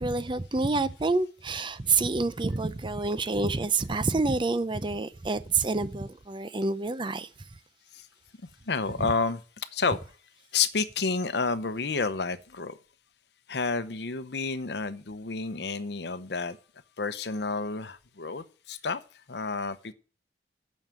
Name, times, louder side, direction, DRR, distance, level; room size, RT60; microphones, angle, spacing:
voice 1, 0.0-7.3, right 3 dB, 25° right, 0.5 m, -28 dB
voice 2, 8.6-10.0 10.5-12.8 13.5-16.6 17.0-19.9, left 4 dB, 65° left, 0.8 m, -30 dB
9.1 x 6.5 x 7.4 m
head